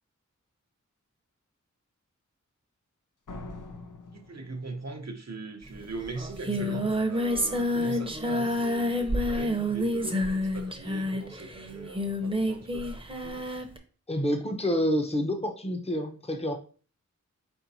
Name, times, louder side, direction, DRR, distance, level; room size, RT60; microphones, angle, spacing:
Slam, 3.3-5.2, left 2 dB, 90° left, 0.7 m, -43 dB
voice 1, 4.1-12.9, right 3 dB, 60° right, 0.7 m, -40 dB
Singing, 5.7-5.8 6.0-13.8, left 1 dB, 20° right, 0.8 m, -29 dB
voice 2, 14.1-16.5, equal, 20° left, 0.8 m, -28 dB
4.4 x 4.4 x 2.7 m
wide cardioid pair, 55°, 30 cm